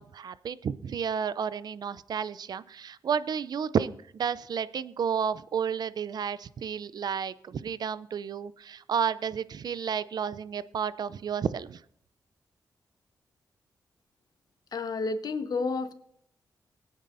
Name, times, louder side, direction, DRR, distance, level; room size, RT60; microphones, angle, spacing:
voice 1, 0.0-11.8, right 7 dB, 65° right, 17 dB, 0.5 m, -31 dB
voice 2, 14.7-15.9, left 4 dB, 60° left, 9 dB, 1.1 m, -30 dB
19.0 x 8.9 x 2.6 m, 0.69 s
cardioid pair, 60°, 8 cm